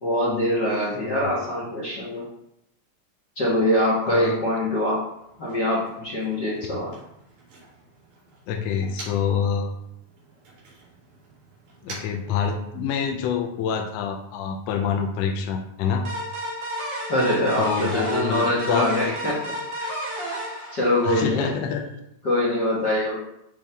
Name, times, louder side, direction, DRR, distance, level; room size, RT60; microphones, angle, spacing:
voice 1, 0.0-2.2 3.4-5.0 5.4-6.9 17.1-19.4 19.8-19.9 20.7-21.5 22.2-23.2, left 1 dB, 45° left, -5 dB, 1.4 m, -23 dB
voice 2, 4.1-4.4 8.5-9.7 11.8-16.0 17.6-19.1 21.0-21.8, left 7 dB, 80° left, 2 dB, 1.5 m, -26 dB
Motor vehicle (road), 5.0-9.5 9.8-13.1, right 2 dB, 85° right, 4.2 m, -47 dB
sound 1, 16.1-21.5, equal, 50° right, 1.6 m, -32 dB
8.6 x 3.3 x 3.5 m, 0.79 s
omnidirectional pair, 3.6 m